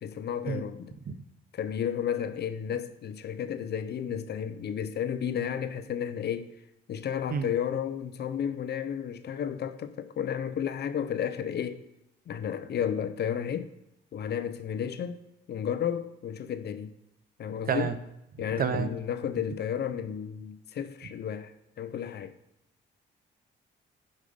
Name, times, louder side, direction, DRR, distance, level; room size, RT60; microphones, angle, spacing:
voice 1, 0.0-0.9 1.5-6.5 6.9-11.8 12.3-13.7 14.1-15.2 15.5-16.9 17.4-17.9 18.4-21.5 21.8-22.3, left 8 dB, 55° left, 0.6 m, -32 dB
voice 2, 18.6-18.9, right 7 dB, 50° right, 0.7 m, -29 dB
8.4 x 5.5 x 5.2 m
cardioid pair, 90°, 20 cm